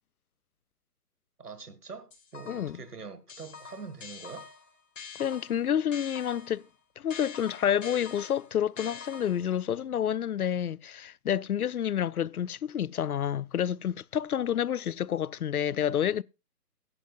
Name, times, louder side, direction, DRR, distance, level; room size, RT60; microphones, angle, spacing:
voice 1, 1.4-4.5, right 5 dB, 75° right, 1.9 m, -44 dB
sound 1, 2.1-2.8 3.3-6.6 7.1-9.6, left 6 dB, 50° left, 3.5 m, -45 dB
voice 2, 2.5-2.8 5.2-6.6 7.0-16.2, left 9 dB, 70° left, 0.5 m, -29 dB
15.0 x 11.0 x 2.4 m
figure-of-eight pair, 140°, 47 cm